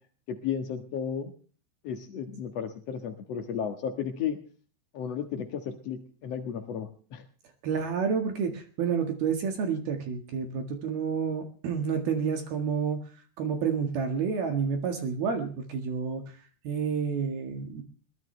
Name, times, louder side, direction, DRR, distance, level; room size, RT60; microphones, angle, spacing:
voice 1, 0.3-1.3 1.8-4.4 4.9-7.2, left 8 dB, 60° left, 4 dB, 1.7 m, -34 dB
voice 2, 7.6-13.0 13.4-16.2 16.6-17.8, right 6 dB, 60° right, 5 dB, 3.4 m, -29 dB
22.5 x 18.5 x 3.3 m, 0.41 s
omnidirectional pair, 5.2 m